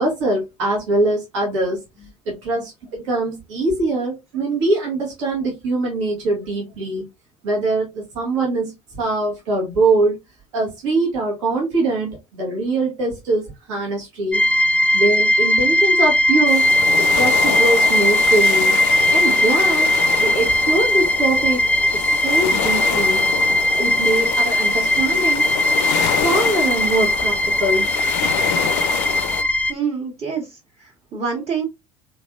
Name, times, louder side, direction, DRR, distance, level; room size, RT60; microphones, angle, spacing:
voice 1, 0.0-1.8 2.2-7.0 7.4-10.2 10.5-14.4 14.9-16.7 17.0-18.8 19.1-19.9 20.2-21.6 21.9-23.2 23.6-25.5 26.2-27.9, right 2 dB, 75° right, 1.4 m, -22 dB
sound 1, 14.3-29.7, left 1 dB, 10° left, 0.4 m, -18 dB
sound 2, 16.5-29.4, left 10 dB, 70° left, 0.4 m, -27 dB
voice 2, 29.7-31.7, right 6 dB, 40° right, 1.3 m, -27 dB
3.3 x 3.2 x 2.4 m
hypercardioid pair, 60°, 16 cm